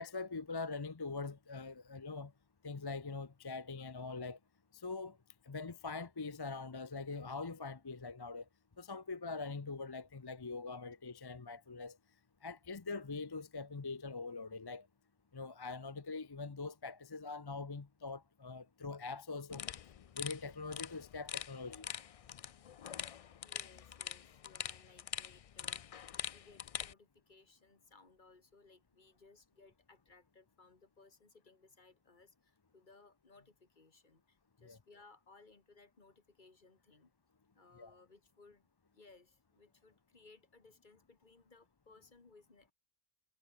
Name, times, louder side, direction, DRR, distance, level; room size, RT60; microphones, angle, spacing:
voice 1, 0.0-2.3 2.6-4.4 4.7-5.2 5.5-8.4 8.8-12.0 12.4-14.9 15.3-19.6 20.2-21.9 34.6-34.8 37.7-37.9, left 4 dB, 25° left, 0.6 m, -43 dB
sound 1, 19.5-26.9, left 9 dB, 65° left, 0.3 m, -44 dB
voice 2, 23.4-37.1 37.5-38.7 38.9-42.7, left 3 dB, 45° left, 1.9 m, -63 dB
omnidirectional pair, 1.1 m